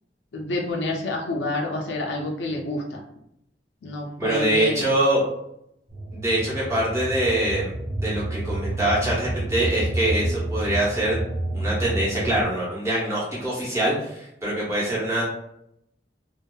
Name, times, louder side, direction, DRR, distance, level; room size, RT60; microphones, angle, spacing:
voice 1, 0.3-3.0 3.8-4.9, left 2 dB, 75° left, 1 dB, 0.5 m, -28 dB
voice 2, 4.2-5.2 6.1-7.7 8.0-11.2 11.5-15.2, right 1 dB, 15° right, -8 dB, 1.0 m, -24 dB
sound 1, 5.9-12.4, right 1 dB, 40° right, 1.1 m, -29 dB
2.7 x 2.4 x 2.3 m, 0.77 s
head